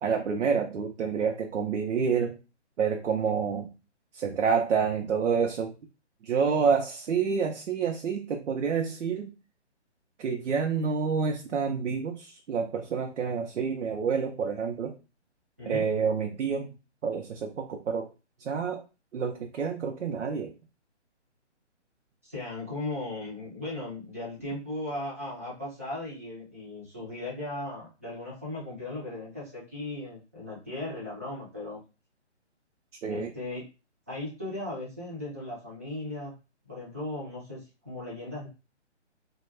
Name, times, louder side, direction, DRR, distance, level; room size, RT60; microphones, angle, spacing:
voice 1, 0.0-2.4 2.8-3.7 4.1-5.7 6.2-9.3 10.2-15.0 15.7-16.8 17.0-18.1 18.4-18.8 19.1-20.6 33.0-33.3, right 6 dB, 80° right, 3 dB, 0.6 m, -28 dB
voice 2, 22.2-31.8 33.1-33.7 34.1-36.3 36.6-38.5, left 2 dB, 15° right, -7 dB, 0.4 m, -37 dB
2.2 x 2.2 x 3.1 m, 0.30 s
hypercardioid pair, 155°, 35 cm